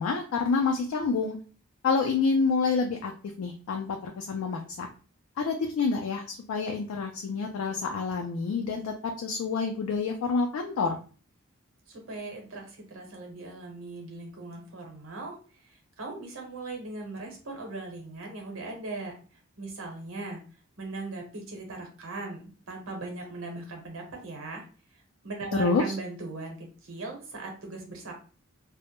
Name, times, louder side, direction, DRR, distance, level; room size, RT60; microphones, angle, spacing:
voice 1, 0.0-1.4 1.8-3.1 3.4-4.9 5.4-11.0 25.5-25.8, left 4 dB, 90° left, 3 dB, 0.3 m, -28 dB
voice 2, 11.9-15.4 15.6-20.4 20.8-24.6 24.9-28.1, right 2 dB, 80° right, 2 dB, 0.8 m, -39 dB
2.1 x 2.0 x 2.9 m, 0.37 s
head